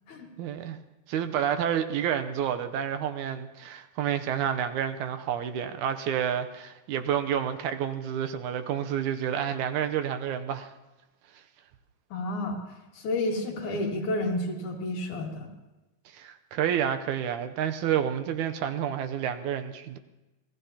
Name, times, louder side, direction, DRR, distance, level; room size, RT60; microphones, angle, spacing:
voice 1, 0.4-0.8 1.1-10.7 13.7-13.8 16.1-20.0, right 9 dB, 80° right, 8 dB, 2.2 m, -29 dB
voice 2, 12.1-12.6 13.0-15.5, left 2 dB, 75° left, 0 dB, 3.4 m, -30 dB
27.0 x 18.0 x 2.9 m, 1.1 s
omnidirectional pair, 3.5 m